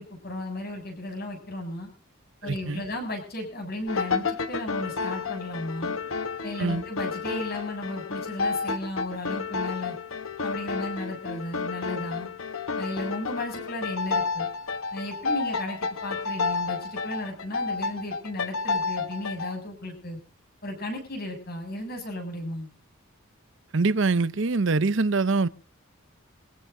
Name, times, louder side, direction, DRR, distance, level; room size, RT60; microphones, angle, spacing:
voice 1, 0.0-1.9 2.4-6.0 6.4-10.0 10.4-12.3 12.8-14.5 14.9-20.2 20.6-22.7, left 1 dB, 45° left, 7.4 m, -35 dB
voice 2, 2.4-2.8 6.6-6.8 23.7-25.5, right 3 dB, 60° right, 0.7 m, -24 dB
sound 1, 3.9-19.6, left 4 dB, 75° left, 1.2 m, -31 dB
25.0 x 15.5 x 2.7 m
head